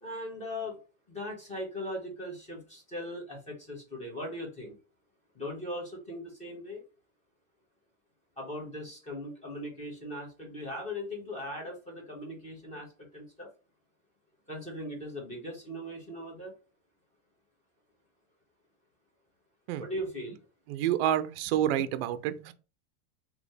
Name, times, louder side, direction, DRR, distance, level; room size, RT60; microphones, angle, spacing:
voice 1, 0.0-0.8 1.1-4.8 5.3-6.8 8.4-13.5 14.5-16.5 19.8-20.4, left 1 dB, 15° left, 1.3 m, -39 dB
voice 2, 20.7-22.5, right 11 dB, 45° right, 0.4 m, -28 dB
4.1 x 2.9 x 3.3 m
supercardioid pair, 170°, 45 cm